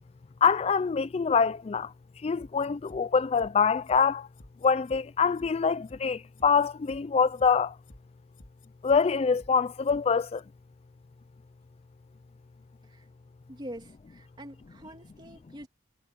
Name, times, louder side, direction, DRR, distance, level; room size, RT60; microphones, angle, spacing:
voice 1, 0.4-1.9 2.2-4.3 4.6-7.8 8.8-10.4, left 5 dB, 35° left, 0.3 m, -25 dB
sound 1, 2.4-3.0 3.3-3.5 3.8-4.0 4.3-5.0 5.3-5.5 5.8-6.0 6.3-7.0 7.3-7.5 7.8-8.0 8.3-9.0 9.3-9.5 9.8-10.0 10.3-10.4, left 1 dB, 50° left, 2.2 m, -51 dB
voice 2, 13.5-15.7, equal, 25° right, 2.9 m, -44 dB
head